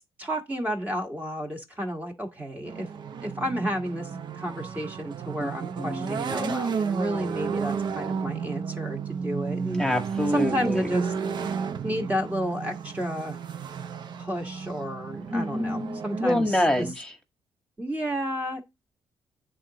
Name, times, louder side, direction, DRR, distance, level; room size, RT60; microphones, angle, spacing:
voice 1, 0.2-2.9 3.2-4.1 4.4-9.8 10.3-11.1 11.8-13.4 14.2-16.6 17.8-18.6, equal, 15° right, 1.4 m, -31 dB
sound 1, 2.7-16.9, right 6 dB, 50° right, 0.6 m, -33 dB
voice 2, 5.8-6.6 9.8-10.9 15.3-17.1, left 1 dB, 5° left, 1.4 m, -27 dB
10.0 x 3.9 x 2.8 m
cardioid pair, 110°, 9 cm